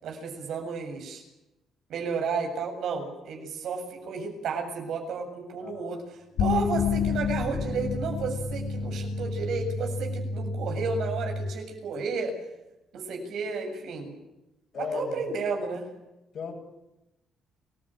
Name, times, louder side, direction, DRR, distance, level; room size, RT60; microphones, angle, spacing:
voice 1, 0.0-1.2 1.9-12.3 12.9-14.1 14.8-15.8, right 4 dB, 75° right, 4 dB, 7.6 m, -32 dB
voice 2, 5.6-6.0 14.7-15.2 16.3-16.5, left 6 dB, 60° left, -1 dB, 8.0 m, -35 dB
sound 1, 6.4-11.5, left 5 dB, 90° left, 3.5 m, -29 dB
29.5 x 16.0 x 9.1 m, 0.93 s
cardioid pair, 90°, 0 cm